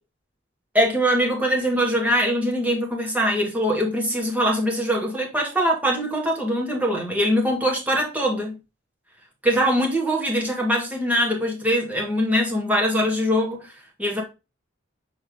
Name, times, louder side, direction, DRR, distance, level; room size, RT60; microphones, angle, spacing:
voice 1, 0.7-8.6 9.4-13.7 14.0-14.2, equal, 10° right, 2.2 m, -22 dB
6.6 x 4.3 x 3.7 m
head